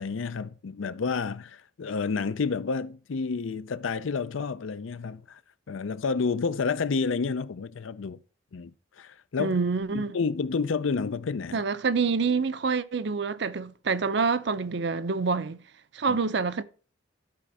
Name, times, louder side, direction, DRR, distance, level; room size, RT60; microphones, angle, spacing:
voice 1, 0.0-5.4 5.7-8.2 8.5-8.7 9.0-9.6 9.9-11.6 16.1-16.2, left 5 dB, 90° left, 0.5 m, -30 dB
voice 2, 9.4-10.2 11.5-15.6 15.9-16.6, right 4 dB, 60° right, 0.6 m, -27 dB
12.5 x 4.3 x 4.8 m
head